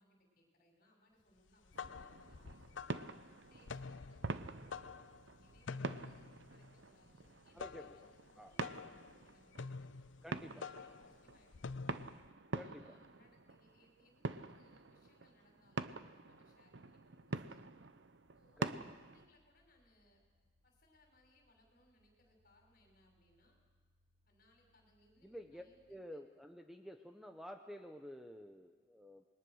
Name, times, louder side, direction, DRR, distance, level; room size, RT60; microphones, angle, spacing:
voice 1, 0.0-3.0 3.5-4.9 5.4-9.9 10.5-11.9 12.5-17.6 18.3-20.2 20.6-23.6 24.2-26.3, left 1 dB, 50° left, 1 dB, 6.1 m, -71 dB
sound 1, 1.5-12.3, left 4 dB, 80° left, 0.6 m, -49 dB
sound 2, 1.7-19.3, right 3 dB, 70° right, 0.8 m, -46 dB
voice 2, 7.5-8.1 8.4-8.5 10.2-10.7 12.5-13.0 18.6-18.8 25.2-29.3, equal, ahead, 5 dB, 0.9 m, -51 dB
sound 3, 18.2-26.0, left 1 dB, 35° right, 1.8 m, -77 dB
27.5 x 21.5 x 6.4 m, 1.4 s
head